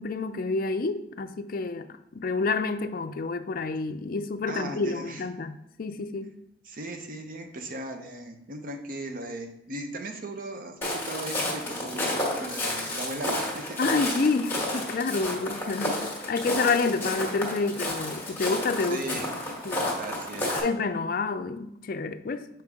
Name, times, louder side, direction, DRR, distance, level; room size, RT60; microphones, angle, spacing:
voice 1, 0.0-6.3 13.8-19.0 19.6-20.0 20.5-22.4, left 4 dB, 50° left, 0.4 m, -29 dB
voice 2, 4.5-5.2 6.7-13.8 18.9-19.4 20.0-20.6, right 1 dB, 45° right, 0.8 m, -37 dB
Walk footsteps, 10.8-20.6, left 1 dB, 10° left, 1.4 m, -31 dB
6.7 x 4.5 x 3.6 m
head